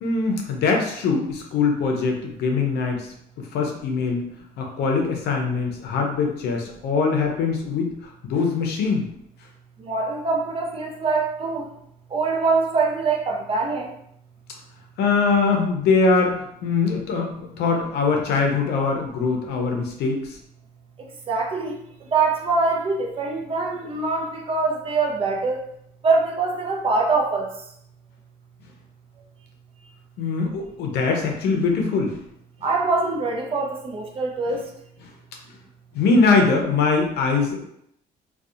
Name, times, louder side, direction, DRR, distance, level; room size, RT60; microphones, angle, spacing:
voice 1, 0.0-3.0 3.5-4.2 4.6-7.9 8.2-9.0 15.0-20.2 30.2-32.2 35.9-37.6, left 4 dB, 75° left, 2 dB, 0.6 m, -22 dB
voice 2, 9.8-11.7 12.1-13.9 21.3-21.8 22.1-25.6 26.0-27.5 32.6-34.6, right 3 dB, 35° right, 1 dB, 0.5 m, -23 dB
2.7 x 2.2 x 2.4 m, 0.74 s
cardioid pair, 110°, 17 cm